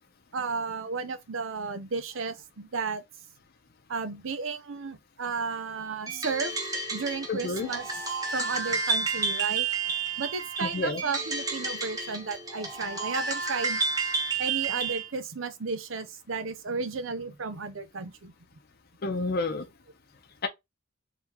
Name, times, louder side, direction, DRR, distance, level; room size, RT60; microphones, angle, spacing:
voice 1, 0.3-3.0 3.9-6.5 6.9-8.1 8.3-9.7 10.2-13.8 14.4-18.3, right 4 dB, 85° right, 0.7 m, -33 dB
sound 1, 6.1-15.1, right 4 dB, 20° right, 1.2 m, -31 dB
voice 2, 7.3-7.7 10.6-11.0 19.0-19.6, left 3 dB, 55° left, 0.7 m, -29 dB
3.7 x 3.6 x 2.9 m
head